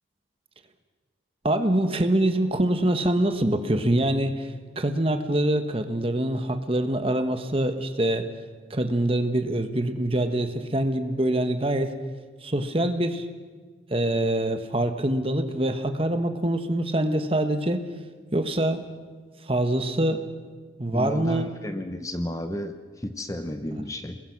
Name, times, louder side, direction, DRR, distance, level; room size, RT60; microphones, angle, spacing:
voice 1, 1.4-8.3 8.7-12.0 12.4-13.3 13.9-17.8 18.3-18.8 19.5-20.3 20.8-21.5, right 1 dB, 30° right, 8 dB, 1.4 m, -24 dB
voice 2, 20.9-24.2, left 1 dB, 15° left, 8 dB, 0.9 m, -32 dB
29.5 x 21.0 x 6.0 m, 1.4 s
head